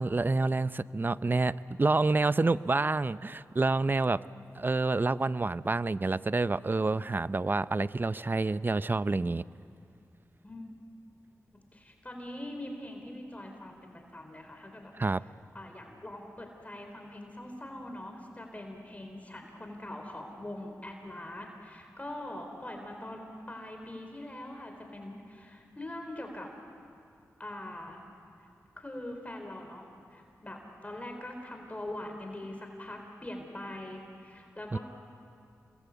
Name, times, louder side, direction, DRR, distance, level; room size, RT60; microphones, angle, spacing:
voice 1, 0.0-4.2 4.5-9.4 15.0-15.2 34.7-34.8, right 3 dB, 35° right, 16 dB, 0.6 m, -28 dB
voice 2, 10.4-10.7 11.7-14.9 15.5-26.5 27.4-28.0 28.8-34.8, left 1 dB, 25° left, 3 dB, 4.1 m, -43 dB
29.5 x 21.0 x 8.3 m, 2.5 s
cardioid pair, 50°, 6 cm